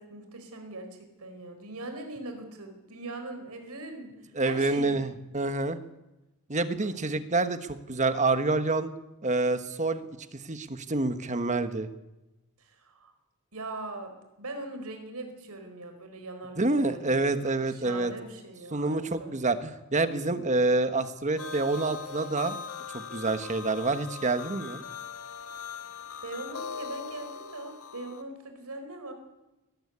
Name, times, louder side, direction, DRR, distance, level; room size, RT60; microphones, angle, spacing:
voice 1, 0.0-4.9 6.8-7.2 12.6-13.1 13.5-14.1 14.4-19.3 25.6-25.7 26.2-29.1, right 2 dB, 85° right, 6 dB, 4.5 m, -41 dB
voice 2, 4.4-5.8 6.5-8.9 9.2-10.0 10.3-11.9 16.6-18.1 18.7-22.6 22.9-24.8, right 3 dB, 35° right, 10 dB, 1.3 m, -27 dB
sound 1, 21.4-28.2, left 6 dB, 75° left, 1.6 m, -40 dB
21.0 x 14.5 x 9.7 m, 1.0 s
head